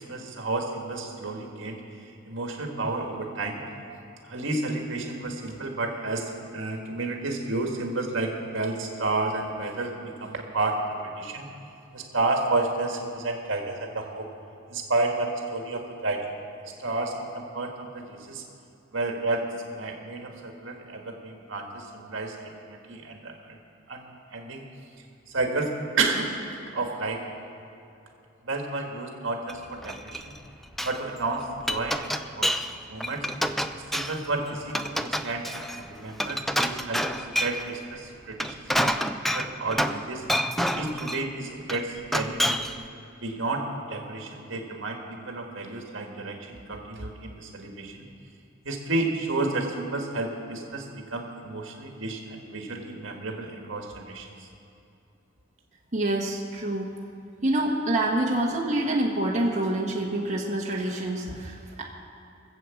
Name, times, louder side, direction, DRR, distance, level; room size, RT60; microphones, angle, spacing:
voice 1, 0.0-3.6 4.2-11.5 11.9-14.3 14.7-16.3 16.8-18.4 18.9-23.6 23.9-24.6 25.3-26.3 26.7-27.2 28.4-30.3 30.8-33.3 33.7-39.0 39.3-40.3 40.7-42.7 43.2-48.1 48.6-54.5, right 2 dB, 65° right, 1 dB, 1.9 m, -31 dB
Glass, 29.5-30.4 30.6-31.0 31.4-32.7 33.0-34.3 34.7-37.7 38.2-40.0 40.3-41.3 41.7-42.8, equal, ahead, 0.4 m, -28 dB
voice 2, 55.9-56.9 57.4-61.8, right 1 dB, 35° right, -3 dB, 1.5 m, -26 dB
22.0 x 8.0 x 7.2 m, 2.7 s
head